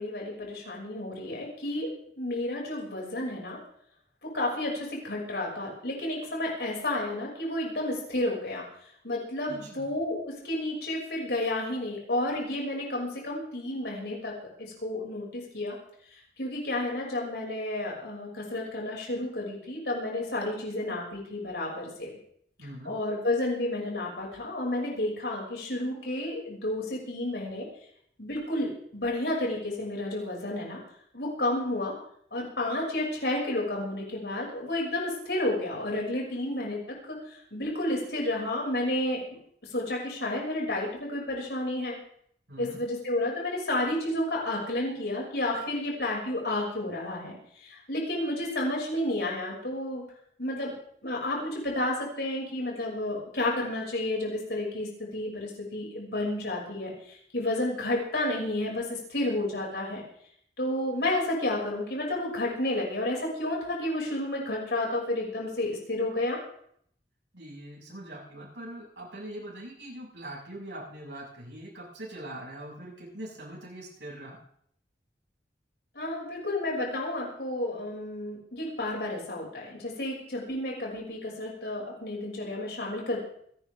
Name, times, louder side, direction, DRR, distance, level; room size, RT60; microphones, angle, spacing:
voice 1, 0.0-3.6 4.2-8.6 9.0-14.3 14.6-15.8 16.1-22.1 22.8-27.7 28.2-30.8 31.1-31.9 32.3-39.2 39.7-42.0 42.6-50.0 50.4-50.7 51.0-60.0 60.6-66.4 75.9-83.2, left 1 dB, 70° left, -2 dB, 6.3 m, -31 dB
voice 2, 9.5-9.9 22.6-22.9 42.5-42.8 67.3-74.4, right 1 dB, 85° right, -3 dB, 6.6 m, -42 dB
28.0 x 12.0 x 3.7 m, 0.66 s
head